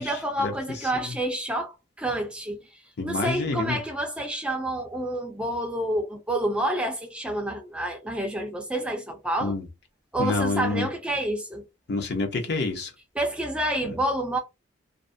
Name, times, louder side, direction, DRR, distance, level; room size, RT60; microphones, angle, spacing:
voice 1, 0.0-2.6 3.0-9.6 10.1-11.6 13.2-14.4, right 1 dB, 5° right, 0.3 m, -28 dB
voice 2, 3.0-3.8 9.4-9.6 10.2-10.9 11.9-12.9, left 3 dB, 55° left, 0.6 m, -27 dB
2.4 x 2.1 x 2.5 m
head